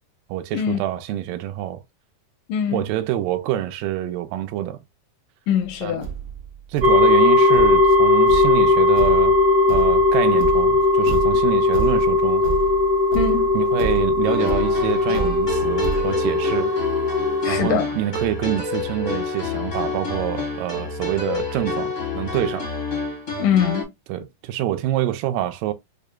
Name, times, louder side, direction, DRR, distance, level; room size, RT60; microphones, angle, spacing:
voice 1, 0.3-1.8 2.7-4.8 5.8-6.0 6.7-9.4 9.7-12.4 13.5-16.7 17.5-22.7 24.1-25.7, right 13 dB, 90° right, 2.2 m, -26 dB
voice 2, 2.5-2.8 5.5-6.1 13.1-13.6 17.4-17.9 23.4-23.9, left 8 dB, 80° left, 2.3 m, -22 dB
Thump thud, 5.6-5.7 6.0-16.1, right 7 dB, 65° right, 1.6 m, -31 dB
sound 1, 6.8-17.6, left 2 dB, 35° right, 0.6 m, -18 dB
sound 2, 14.2-23.8, left 3 dB, 40° left, 0.6 m, -28 dB
6.4 x 2.3 x 2.2 m
omnidirectional pair, 3.9 m